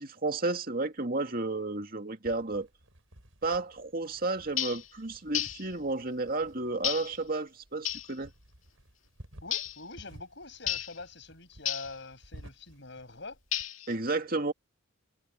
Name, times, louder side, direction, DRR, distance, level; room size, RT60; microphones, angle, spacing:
voice 1, 0.0-2.7 3.4-8.3 13.9-14.5, right 2 dB, 45° right, 2.2 m, -32 dB
sound 1, 2.2-13.7, equal, 75° right, 5.7 m, -55 dB
sound 2, 4.6-4.9 5.3-5.7 6.8-7.2 7.9-8.1 9.5-9.8 10.7-11.0 11.7-12.0 13.5-13.9, left 12 dB, 80° left, 2.1 m, -32 dB
voice 2, 9.4-13.4, left 3 dB, 60° left, 6.9 m, -44 dB
head